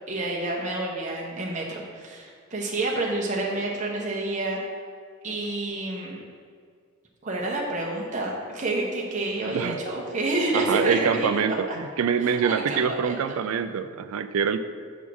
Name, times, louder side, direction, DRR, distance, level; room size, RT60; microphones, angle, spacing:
voice 1, 0.1-4.6 5.2-6.2 7.2-11.8 12.2-13.4, right 2 dB, 35° right, -4 dB, 0.9 m, -29 dB
voice 2, 9.4-9.8 10.5-14.6, right 7 dB, 80° right, 11 dB, 0.3 m, -25 dB
7.1 x 3.6 x 6.1 m, 2.1 s
head